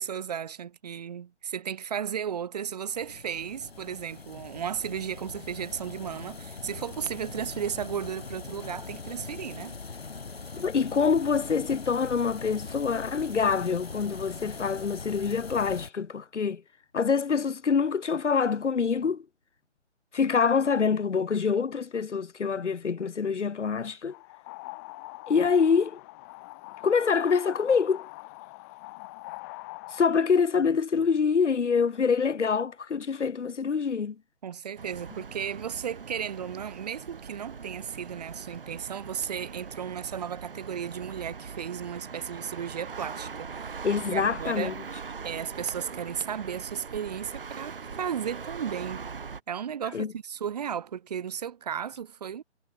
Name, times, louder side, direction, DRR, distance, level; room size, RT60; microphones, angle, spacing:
voice 1, 0.0-9.7 34.4-44.7 45.2-49.0 49.5-52.4, right 8 dB, 35° right, 3.0 m, -35 dB
sound 1, 2.9-15.9, left 4 dB, 60° left, 7.0 m, -41 dB
voice 2, 10.6-16.6 16.9-19.3 20.1-24.1 25.3-26.0 26.8-28.1 29.9-34.2 43.8-44.7 49.9-50.1, left 6 dB, 85° left, 0.6 m, -25 dB
sound 2, 24.1-30.0, left 25 dB, 15° left, 1.5 m, -43 dB
sound 3, 34.8-49.4, right 5 dB, 50° right, 2.0 m, -41 dB
figure-of-eight pair, 145°, 35 cm